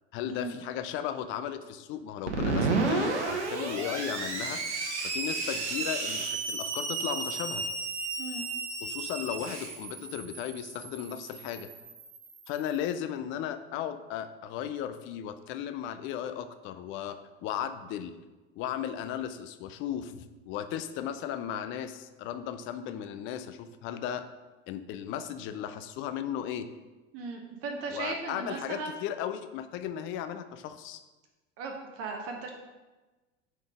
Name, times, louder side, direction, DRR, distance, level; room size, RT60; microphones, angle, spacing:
voice 1, 0.1-4.6 5.0-7.7 8.8-11.7 12.5-18.1 18.6-24.2 24.7-26.7 27.9-31.0, left 10 dB, 35° left, 10 dB, 0.4 m, -36 dB
Screech, 2.3-12.7, right 3 dB, 70° right, 1.0 m, -33 dB
voice 2, 27.1-29.0 31.6-32.5, right 3 dB, 40° right, 2 dB, 0.8 m, -37 dB
5.1 x 3.8 x 4.9 m, 1.2 s
figure-of-eight pair, 75°, 35 cm